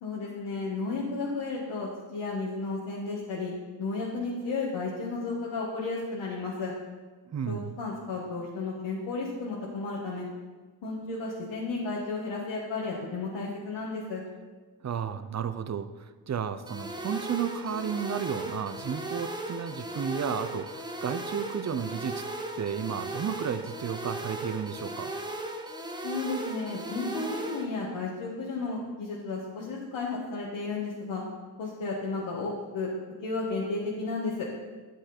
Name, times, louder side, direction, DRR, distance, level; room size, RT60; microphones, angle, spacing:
voice 1, 0.0-3.5 3.8-6.7 7.5-10.2 10.8-14.2 26.0-31.2 31.6-32.9 33.2-34.5, left 3 dB, 85° left, -5 dB, 1.9 m, -33 dB
voice 2, 7.3-7.8 14.8-22.2 22.6-25.1, right 7 dB, 40° right, 12 dB, 0.7 m, -33 dB
sound 1, 16.7-27.7, right 1 dB, 10° right, 1.1 m, -37 dB
12.5 x 7.6 x 4.4 m, 1.3 s
cardioid pair, 95°, 44 cm